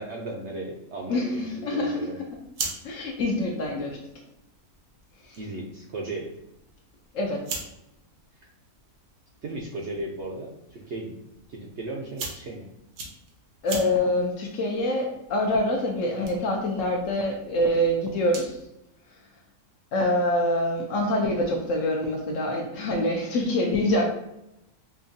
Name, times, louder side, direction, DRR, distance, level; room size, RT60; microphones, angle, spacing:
voice 1, 0.0-2.2 5.4-6.3 9.4-11.2 11.5-12.7, right 2 dB, 65° right, -1 dB, 0.7 m, -36 dB
voice 2, 1.1-2.1 2.8-4.0 5.2-5.4 7.1-7.4 13.6-18.6 19.9-24.1, left 1 dB, 65° left, 2 dB, 0.9 m, -25 dB
sound 1, 2.2-18.7, right 4 dB, 80° right, 1.3 m, -43 dB
5.2 x 2.3 x 2.6 m, 0.85 s
omnidirectional pair, 1.6 m